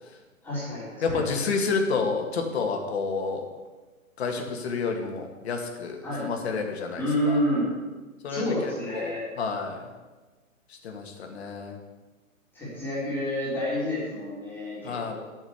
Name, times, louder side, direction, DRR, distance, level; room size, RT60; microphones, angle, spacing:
voice 1, 0.4-1.2 6.0-6.3 6.9-7.7 8.3-9.2 12.5-15.1, left 1 dB, 5° left, -9 dB, 3.9 m, -29 dB
voice 2, 1.0-3.4 4.2-7.4 8.2-9.8 10.7-11.8 14.8-15.1, left 4 dB, 50° left, 3 dB, 2.3 m, -30 dB
12.0 x 7.2 x 8.2 m, 1.3 s
hypercardioid pair, 155°, 41 cm